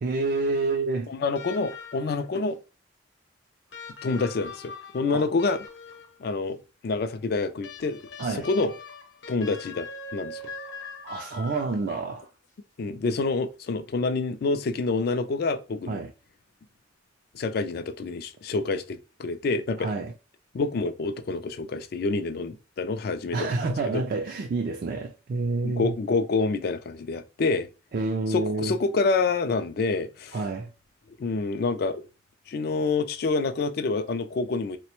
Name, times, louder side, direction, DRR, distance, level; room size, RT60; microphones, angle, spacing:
voice 1, 0.0-1.1 5.1-5.3 8.2-8.5 11.0-12.3 15.9-16.1 19.8-20.1 23.3-25.9 27.9-28.7 30.3-30.7, right 3 dB, 45° right, 0.3 m, -28 dB
voice 2, 1.1-2.6 4.0-5.6 6.2-6.6 6.8-8.0 8.3-8.7 9.3-10.4 12.8-16.0 17.3-19.9 20.5-23.5 23.9-24.0 25.6-27.7 28.3-30.4 31.2-32.0 32.5-34.8, left 3 dB, 50° left, 0.3 m, -27 dB
sound 1, 1.3-2.3 3.7-6.3 7.6-12.1 13.4-13.5, left 3 dB, 65° left, 0.8 m, -42 dB
4.0 x 2.1 x 2.9 m
head